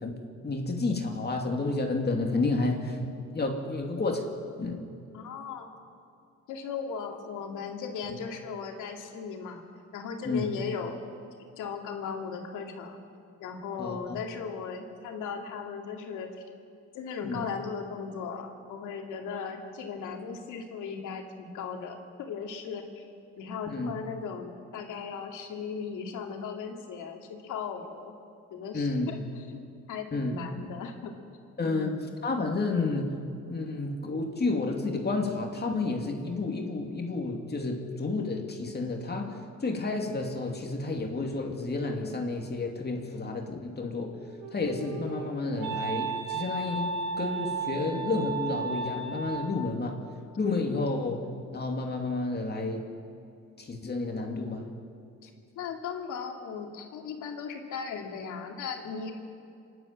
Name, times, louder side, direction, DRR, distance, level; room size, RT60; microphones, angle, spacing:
voice 1, 0.0-3.0 3.3-4.3 4.6-4.8 10.2-10.4 13.8-14.2 17.2-17.4 23.7-23.9 28.7-29.1 30.1-30.4 31.6-32.0 32.2-33.1 33.5-44.2 44.5-50.0 50.4-51.2 51.5-52.9 53.6-54.7, left 3 dB, 35° left, 1 dB, 2.5 m, -30 dB
voice 2, 5.1-5.8 6.5-9.6 9.9-11.0 11.6-13.0 13.4-16.3 16.9-23.0 23.4-28.2 28.5-29.6 29.9-31.1 31.6-31.9 50.6-50.9 55.2-55.3 55.6-59.1, left 6 dB, 90° left, 2 dB, 2.4 m, -37 dB
Wind instrument woodwind instrument, 44.2-49.7, right 4 dB, 90° right, 3.2 m, -34 dB
26.5 x 11.5 x 8.7 m, 2.5 s
cardioid pair, 90°, 30 cm